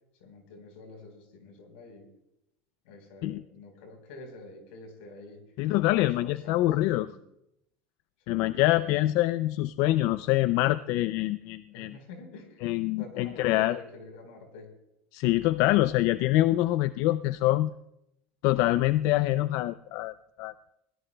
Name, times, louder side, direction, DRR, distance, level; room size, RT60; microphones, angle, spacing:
voice 1, 0.2-2.1 2.8-5.4 5.9-7.2 8.3-9.0 11.7-12.7 13.0-14.7, left 3 dB, 85° left, 4 dB, 4.2 m, -47 dB
voice 2, 5.6-7.1 8.3-11.9 12.6-13.8 15.1-17.7 18.4-20.5, left 16 dB, 60° left, 14 dB, 0.4 m, -25 dB
22.5 x 17.0 x 2.2 m, 0.84 s
supercardioid pair, 130°, 6 cm